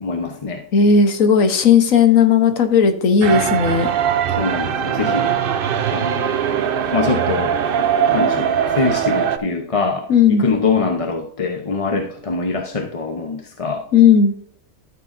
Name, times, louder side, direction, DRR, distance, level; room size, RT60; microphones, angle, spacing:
voice 1, 0.0-0.6 4.4-5.5 5.9-6.5 6.9-7.5 8.1-13.8, left 4 dB, 30° left, 3 dB, 0.8 m, -23 dB
voice 2, 0.7-3.9 10.1-10.4 13.9-14.3, left 6 dB, 75° left, 8 dB, 1.5 m, -14 dB
sound 1, 3.2-9.4, right 8 dB, 55° right, 0.7 m, -20 dB
12.5 x 6.8 x 2.6 m, 0.64 s
omnidirectional pair, 1.4 m